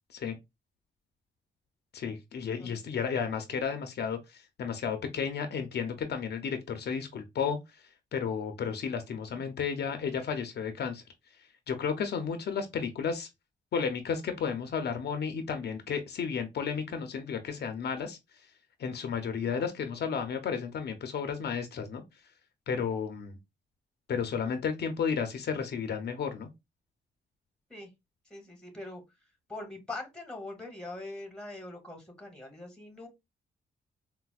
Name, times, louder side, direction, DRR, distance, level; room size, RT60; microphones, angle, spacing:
voice 1, 1.9-7.6 8.1-11.0 11.7-13.3 13.7-18.2 18.8-22.0 22.7-23.4 24.1-26.5, left 6 dB, 65° left, 0.5 m, -33 dB
voice 2, 28.3-29.0 29.5-33.1, left 2 dB, 5° left, 1.3 m, -42 dB
4.1 x 2.1 x 2.3 m
cardioid pair, 95°, 19 cm